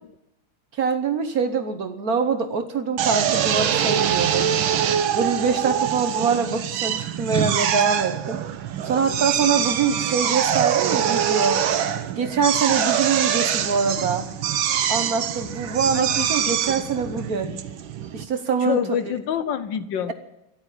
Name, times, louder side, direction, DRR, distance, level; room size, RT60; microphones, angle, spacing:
voice 1, 0.8-4.5 5.1-8.4 8.8-11.6 12.0-14.3 14.9-17.5 18.1-19.0, right 5 dB, 50° right, 8 dB, 1.4 m, -24 dB
Drill, 3.0-18.3, right 9 dB, 75° right, 1.7 m, -24 dB
voice 2, 15.9-16.3 18.6-20.1, left 9 dB, 70° left, 12 dB, 1.4 m, -27 dB
14.0 x 11.0 x 9.0 m, 0.87 s
omnidirectional pair, 2.2 m